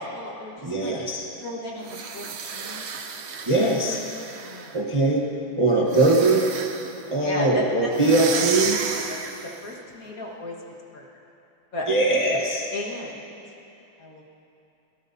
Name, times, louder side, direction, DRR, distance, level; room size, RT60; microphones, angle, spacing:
voice 1, 0.0-1.0 1.4-2.9 4.4-4.7 6.9-9.2 9.6-10.6 10.9-11.0 11.7-11.9 12.7-13.3 14.0-14.4, left 1 dB, 50° left, -2 dB, 1.9 m, -35 dB
voice 2, 0.6-1.2 3.4-4.0 4.7-5.3 5.6-6.4 7.1-8.8 11.9-12.7, right 2 dB, 25° right, -2 dB, 0.8 m, -21 dB
sound 1, 1.8-4.8 5.9-7.0 7.9-9.6, right 5 dB, 60° right, 0.7 m, -32 dB
23.0 x 17.5 x 2.7 m, 2.9 s
omnidirectional pair, 2.1 m